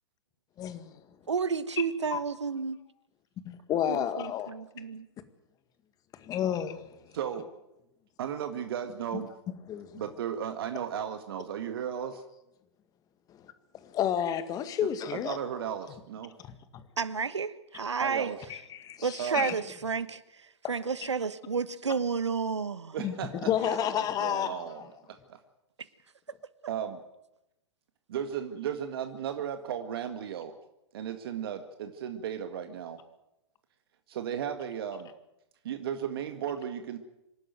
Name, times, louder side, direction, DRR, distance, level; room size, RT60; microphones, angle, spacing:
voice 1, 0.6-1.0 2.1-2.2 3.4-4.5 6.2-7.0 9.7-10.0 13.3-15.4 16.4-16.8 18.5-19.5 23.0-24.6, left 10 dB, 25° left, 11 dB, 1.9 m, -31 dB
voice 2, 1.3-2.8 3.9-5.1 17.0-18.3 19.0-23.0, right 5 dB, 80° right, 16 dB, 1.3 m, -31 dB
voice 3, 7.1-7.5 8.2-9.3 10.0-12.2 14.8-16.3 18.0-18.4 19.2-19.4 22.9-24.8 25.1-25.4 26.7-27.0 28.1-30.6 30.9-33.0 34.1-35.1 35.6-37.0, right 9 dB, 55° right, 7 dB, 1.9 m, -35 dB
27.0 x 12.0 x 9.3 m, 0.87 s
figure-of-eight pair, 115°, 15 cm